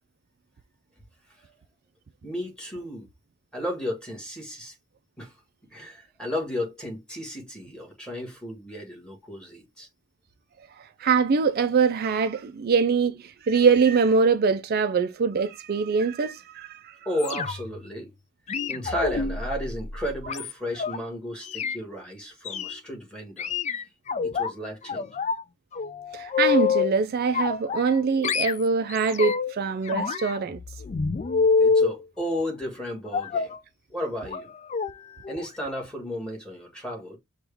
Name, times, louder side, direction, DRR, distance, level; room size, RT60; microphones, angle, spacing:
voice 1, 2.2-3.1 3.5-4.8 5.2-5.3 5.7-9.9 17.0-18.1 18.7-23.5 24.2-25.2 31.6-33.5 33.9-34.5 35.3-37.2, equal, 5° left, 1.7 m, -33 dB
voice 2, 11.0-16.9 26.1-30.6, right 5 dB, 45° right, 0.4 m, -23 dB
sound 1, 17.2-17.8 18.5-21.0 21.4-21.8 22.4-22.7 23.4-24.5 24.9-25.4 25.7-26.9 27.3-28.0 28.2-29.5 29.9-31.9 33.1-33.6 34.2-34.4 34.7-34.9 35.2-35.4 35.7-35.8, left 5 dB, 30° left, 0.3 m, -27 dB
6.1 x 2.4 x 3.4 m
head